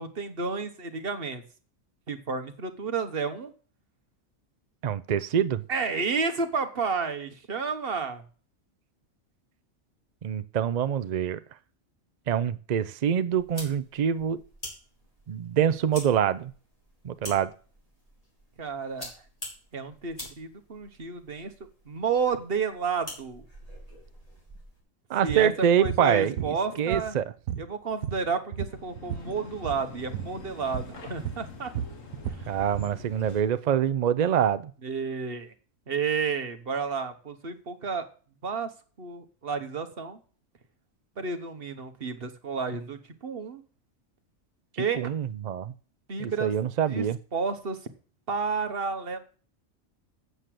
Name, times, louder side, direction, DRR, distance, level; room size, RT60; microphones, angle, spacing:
voice 1, 0.0-1.4 2.1-3.5 5.7-8.2 18.6-19.1 19.7-21.5 21.9-23.4 25.2-25.5 25.8-27.2 27.6-31.7 34.8-35.5 35.9-38.1 38.4-38.7 39.0-40.2 41.2-43.6 44.8-45.1 46.1-46.5 46.9-47.0 47.3-47.8 48.3-49.2, right 5 dB, 45° right, 8 dB, 1.4 m, -31 dB
voice 2, 4.8-5.6 10.2-11.4 12.3-14.4 15.3-16.5 17.0-17.5 25.1-27.3 32.5-34.7 45.0-45.7 46.2-47.2, right 9 dB, 70° right, 14 dB, 0.4 m, -25 dB
sound 1, 13.4-24.8, equal, 25° left, 4.6 m, -46 dB
sound 2, 25.3-25.5 25.8-26.0 26.4-27.2 27.5-29.3 29.6-29.8 30.1-30.3 30.7-31.0 31.2-32.9, right 10 dB, 85° right, 1.2 m, -34 dB
sound 3, 28.5-33.6, left 4 dB, 70° left, 1.8 m, -45 dB
8.2 x 6.7 x 7.5 m, 0.39 s
omnidirectional pair, 1.4 m